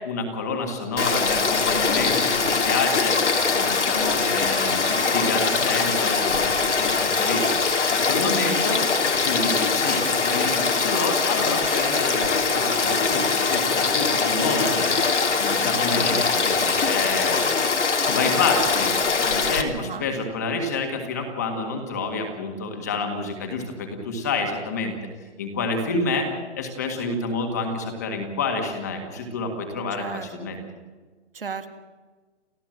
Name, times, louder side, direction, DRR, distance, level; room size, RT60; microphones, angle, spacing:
voice 1, 0.1-7.6 7.9-8.8 9.1-14.9 15.4-17.5 18.1-19.0 19.2-24.9 25.4-26.3 26.6-30.6, left 3 dB, 15° left, 4 dB, 1.8 m, -28 dB
Frog / Stream, 1.0-19.6, left 4 dB, 90° left, 3.5 m, -22 dB
voice 2, 29.9-30.6 31.3-31.7, right 6 dB, 50° right, 9 dB, 2.0 m, -35 dB
29.5 x 14.0 x 7.7 m, 1.3 s
hypercardioid pair, 180°, 35 cm